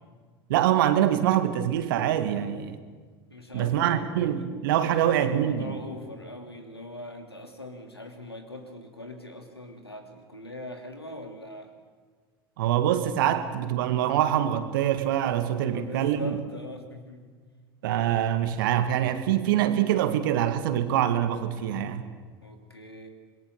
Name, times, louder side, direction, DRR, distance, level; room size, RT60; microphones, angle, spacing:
voice 1, 0.5-2.8 3.5-5.7 12.6-16.4 17.8-22.0, right 11 dB, 60° right, 9 dB, 1.9 m, -24 dB
voice 2, 3.3-11.7 15.6-17.3 22.4-23.1, left 1 dB, 85° left, 5 dB, 2.7 m, -42 dB
27.0 x 22.0 x 6.6 m, 1.5 s
figure-of-eight pair, 75°, 13 cm